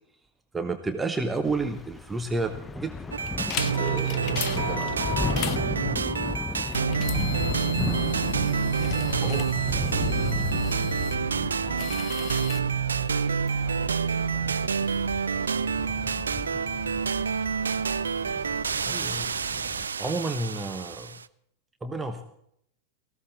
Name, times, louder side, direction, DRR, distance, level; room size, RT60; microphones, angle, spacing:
voice 1, 0.5-2.9 3.8-5.0 9.2-9.5 18.2-18.4 18.9-19.6 20.0-21.1 21.8-22.2, right 3 dB, 10° right, 7 dB, 1.2 m, -31 dB
Thunder / Rain, 1.5-19.9, left 3 dB, 10° left, 0.8 m, -35 dB
sound 1, 3.1-21.2, right 6 dB, 70° right, 0.5 m, -28 dB
sound 2, 3.3-5.6 6.0-11.2 11.6-12.6, left 15 dB, 40° left, 0.6 m, -37 dB
voice 2, 8.6-12.2 12.9-14.9 15.3-16.8, right 8 dB, 45° right, 5 dB, 2.5 m, -49 dB
18.5 x 16.0 x 4.1 m, 0.71 s
figure-of-eight pair, 90°, 0 cm